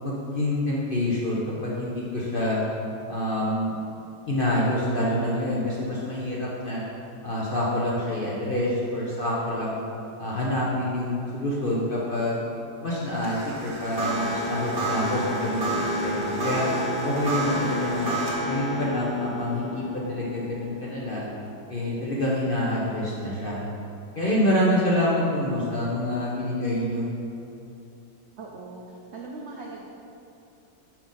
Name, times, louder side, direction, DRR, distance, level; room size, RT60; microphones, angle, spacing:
voice 1, 0.0-2.6 3.1-3.8 4.3-6.8 7.2-9.8 10.2-12.4 12.8-16.7 17.0-18.1 18.5-21.2 21.7-23.6 24.1-27.1, left 1 dB, 45° left, -6 dB, 0.7 m, -27 dB
sound 1, 13.1-22.4, equal, 40° right, 1.1 m, -30 dB
voice 2, 28.4-29.8, right 3 dB, 70° right, -2 dB, 0.6 m, -40 dB
5.8 x 4.9 x 5.3 m, 2.8 s
omnidirectional pair, 1.9 m